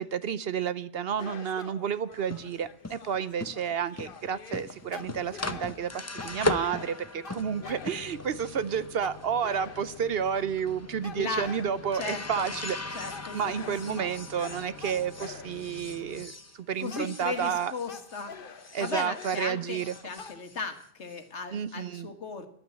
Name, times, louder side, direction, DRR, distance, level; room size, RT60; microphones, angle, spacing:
voice 1, 0.0-12.8 13.3-16.3 16.7-17.7 18.7-19.9 21.5-22.1, right 8 dB, 60° right, 15 dB, 0.9 m, -31 dB
sound 1, 1.2-8.4 9.0-10.2 11.0-12.1 13.1-15.9 16.9-20.4, left 6 dB, 50° left, 1.1 m, -46 dB
sound 2, 2.1-18.3 18.6-21.2, left 2 dB, 15° left, 0.6 m, -39 dB
voice 2, 11.1-11.5 11.9-12.5 12.9-13.4 13.9-14.0 16.8-18.3 18.6-22.5, left 4 dB, 70° left, 8 dB, 1.9 m, -36 dB
12.0 x 9.2 x 8.4 m, 0.65 s
omnidirectional pair, 1.2 m